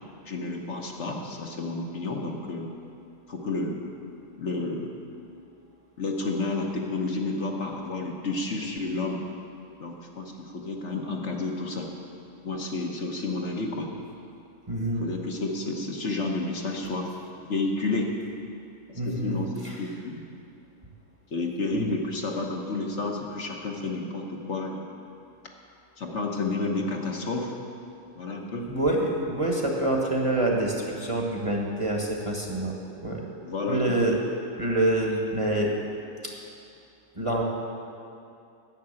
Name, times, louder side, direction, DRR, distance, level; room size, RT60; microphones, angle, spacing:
voice 1, 0.3-2.7 3.3-3.8 4.4-4.9 6.0-9.2 9.8-11.9 12.4-13.9 15.0-17.1 17.5-18.1 18.9-19.5 19.8-20.2 21.3-24.8 26.0-27.5 28.2-28.7 33.4-33.8, left 3 dB, 55° left, 0 dB, 1.4 m, -30 dB
voice 2, 14.7-15.0 19.0-19.4 19.6-19.8 21.7-21.9 28.7-32.7 33.0-33.2 33.7-34.2 34.6-35.7 36.2-36.3 37.1-37.4, right 1 dB, 25° right, -1 dB, 1.3 m, -26 dB
10.5 x 7.4 x 8.7 m, 2.6 s
omnidirectional pair, 1.5 m